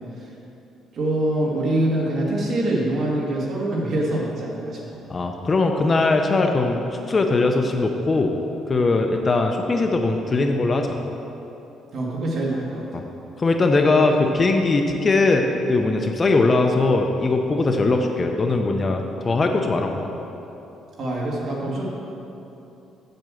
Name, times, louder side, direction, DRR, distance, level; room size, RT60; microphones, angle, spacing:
voice 1, 0.9-5.0 11.9-13.0 21.0-21.9, right 1 dB, 45° right, -4 dB, 2.2 m, -24 dB
voice 2, 5.1-8.3 8.7-11.0 12.9-13.0 13.4-20.1, left 3 dB, 25° left, 4 dB, 0.5 m, -20 dB
7.7 x 6.8 x 7.5 m, 2.9 s
cardioid pair, 160°, 0 cm